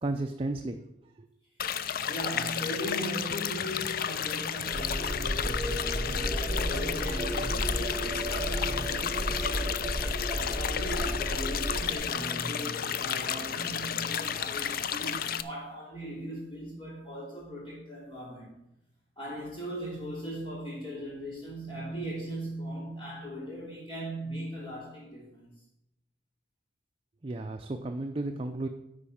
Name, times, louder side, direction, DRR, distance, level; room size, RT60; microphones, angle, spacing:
voice 1, 0.0-0.8 1.2-1.3 27.2-28.7, right 2 dB, 30° right, 4 dB, 0.5 m, -33 dB
sound 1, 1.6-15.4, left 8 dB, 55° left, 0.4 m, -32 dB
voice 2, 2.1-10.0 10.2-18.6 19.2-25.5, equal, 25° left, -10 dB, 3.5 m, -38 dB
sound 2, 4.7-11.9, equal, 10° right, 1.4 m, -33 dB
10.5 x 4.3 x 7.1 m, 0.85 s
head